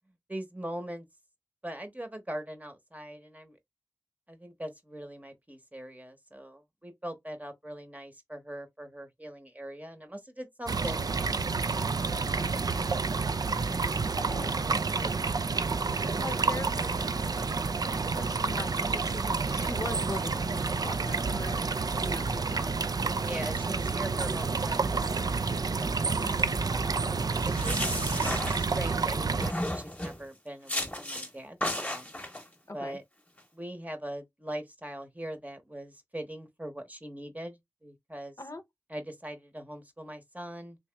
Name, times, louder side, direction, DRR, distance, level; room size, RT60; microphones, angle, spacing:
voice 1, 0.3-1.0 1.6-3.6 4.3-11.1 11.7-12.2 13.5-15.0 23.1-26.2 26.7-27.9 28.5-32.1 32.7-33.0 33.5-38.4 38.9-40.8, right 1 dB, 20° right, 0.9 m, -41 dB
sound 1, 10.7-29.5, right 4 dB, 70° right, 0.3 m, -29 dB
voice 2, 14.1-14.6 14.9-15.1 16.0-16.9 18.1-21.6 21.9-22.8 26.0-26.4 32.7-33.0 38.4-38.6, left 2 dB, 50° left, 0.6 m, -41 dB
sound 2, 27.3-29.0 29.4-30.2 30.7-31.3 31.6-32.4, left 1 dB, 20° left, 0.9 m, -33 dB
2.9 x 2.9 x 3.3 m
wide cardioid pair, 60°, 7 cm